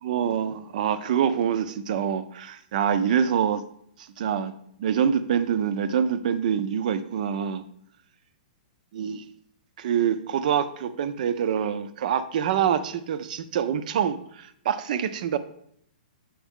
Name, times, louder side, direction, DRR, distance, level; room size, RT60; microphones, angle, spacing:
voice 1, 0.0-3.6 4.2-4.5 4.8-7.6 8.9-9.2 9.8-15.4, right 8 dB, 55° right, 13 dB, 0.5 m, -25 dB
7.2 x 4.6 x 3.6 m, 0.70 s
hypercardioid pair, 155°, 5 cm